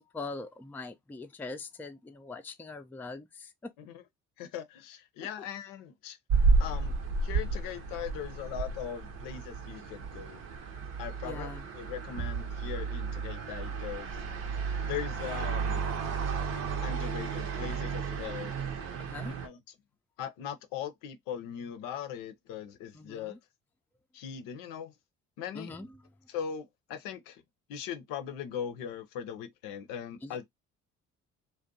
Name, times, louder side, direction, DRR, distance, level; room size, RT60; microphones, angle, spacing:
voice 1, 0.1-3.7 11.2-11.6 19.0-19.3 22.9-23.4 25.5-25.9 30.2-30.4, left 3 dB, 5° left, 0.3 m, -42 dB
voice 2, 4.4-6.2 6.6-6.9 7.2-10.4 11.0-14.2 14.9-15.9 16.8-18.5 19.2-19.7 20.2-23.4 24.1-24.9 25.4-25.7 26.3-27.4 27.7-30.5, left 9 dB, 75° left, 0.6 m, -40 dB
sound 1, 6.3-19.5, right 4 dB, 75° right, 0.7 m, -32 dB
2.6 x 2.1 x 2.5 m
supercardioid pair, 60°, 34 cm